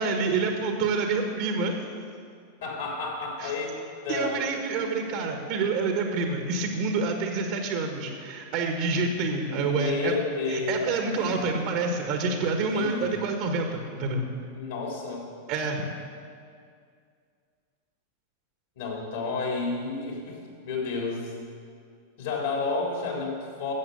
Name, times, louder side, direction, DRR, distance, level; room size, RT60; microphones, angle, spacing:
voice 1, 0.0-1.8 3.4-3.5 4.1-10.1 10.5-14.2 15.5-15.8, right 4 dB, 45° right, 4 dB, 1.5 m, -27 dB
voice 2, 2.6-3.8 4.0-4.5 9.5-11.1 12.6-13.2 14.5-15.3 18.8-21.3 22.2-23.7, left 4 dB, 60° left, -1 dB, 3.6 m, -31 dB
13.5 x 8.0 x 6.9 m, 2.2 s
figure-of-eight pair, 90°, 0 cm